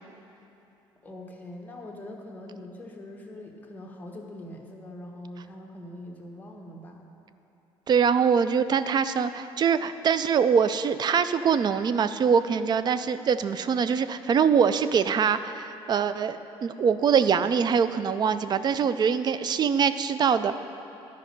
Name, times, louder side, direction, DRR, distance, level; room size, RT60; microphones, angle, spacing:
voice 1, 1.0-7.1, left 1 dB, 15° left, -1 dB, 1.3 m, -42 dB
voice 2, 7.9-20.5, right 6 dB, 40° right, 12 dB, 0.4 m, -23 dB
11.5 x 5.2 x 5.3 m, 3.0 s
cardioid pair, 90°, 11 cm